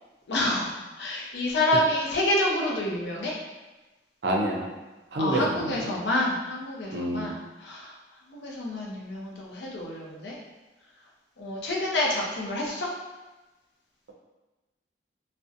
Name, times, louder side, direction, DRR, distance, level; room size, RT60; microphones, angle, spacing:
voice 1, 0.3-3.4 5.2-7.9 8.3-10.4 11.4-12.9, left 1 dB, 70° left, -2 dB, 0.5 m, -28 dB
voice 2, 4.2-4.7 5.1-5.9 6.9-7.3, right 1 dB, 70° right, -1 dB, 0.4 m, -27 dB
2.5 x 2.0 x 2.5 m, 1.1 s
head